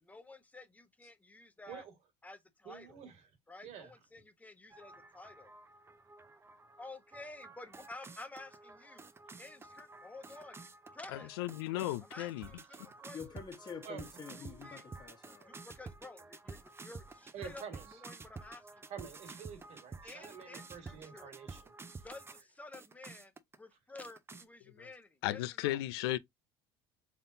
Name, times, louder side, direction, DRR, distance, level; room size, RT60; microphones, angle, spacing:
voice 1, 0.1-1.8 2.2-3.1 3.5-5.5 6.8-9.0 9.4-10.6 10.9-11.3 12.0-13.4 14.3-14.8 15.5-18.9 20.0-21.3 22.0-25.8, left 2 dB, 10° left, 0.9 m, -52 dB
voice 2, 2.7-3.1 3.6-3.9 13.8-14.0 17.3-17.8 18.9-21.7, right 8 dB, 60° right, 1.7 m, -48 dB
sound 1, 4.7-22.4 22.7-23.6 24.0-24.5, right 4 dB, 20° right, 0.6 m, -51 dB
voice 3, 11.1-12.5 25.2-26.2, left 16 dB, 85° left, 0.4 m, -35 dB
voice 4, 13.1-15.5, left 6 dB, 35° left, 1.5 m, -47 dB
4.1 x 3.6 x 2.6 m
supercardioid pair, 90°, 12 cm